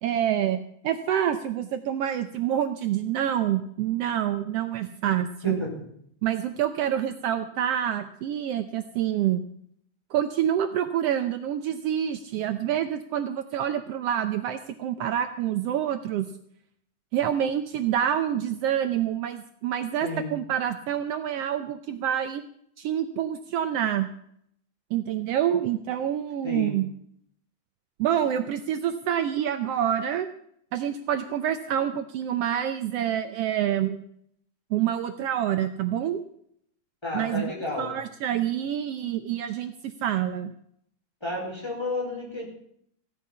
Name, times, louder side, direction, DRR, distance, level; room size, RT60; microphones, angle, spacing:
voice 1, 0.0-5.7 6.2-9.4 10.1-16.3 17.1-22.4 22.8-24.1 24.9-26.9 28.0-30.3 30.7-34.0 34.7-36.2 37.1-37.5 37.8-40.5, right 10 dB, 85° right, 9 dB, 1.3 m, -27 dB
voice 2, 5.4-5.7 20.0-20.4 26.4-26.7 37.0-37.9 41.2-42.5, left 2 dB, 10° left, -2 dB, 4.4 m, -31 dB
16.0 x 11.0 x 5.6 m, 0.68 s
omnidirectional pair, 3.7 m